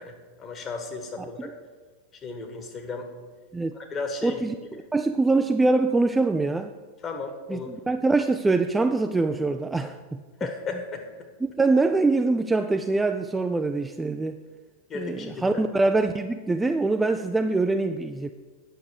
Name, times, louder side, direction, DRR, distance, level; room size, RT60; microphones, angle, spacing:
voice 1, 0.0-1.5 2.2-3.1 3.7-4.4 7.0-7.7 10.4-11.0 14.9-15.6, left 4 dB, 25° left, 4 dB, 1.5 m, -34 dB
voice 2, 4.2-4.5 4.9-6.7 7.5-10.2 11.4-14.4 14.9-18.3, right 3 dB, 10° right, 7 dB, 0.4 m, -24 dB
9.4 x 6.7 x 6.6 m, 1.4 s
figure-of-eight pair, 90°, 0 cm